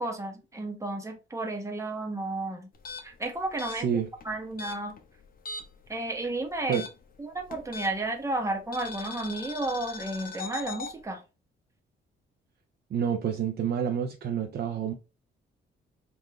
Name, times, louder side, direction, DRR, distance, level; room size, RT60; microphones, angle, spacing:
voice 1, 0.0-2.7 3.0-3.9 4.2-4.9 5.9-6.8 7.2-11.2, right 2 dB, 15° right, 1.0 m, -32 dB
sound 1, 2.7-5.9 6.1-8.2 8.7-10.9, left 4 dB, 45° left, 0.8 m, -40 dB
voice 2, 3.7-4.1 6.7-6.8 12.9-14.9, right 8 dB, 55° right, 0.6 m, -28 dB
3.7 x 2.5 x 3.1 m
cardioid pair, 90°, 20 cm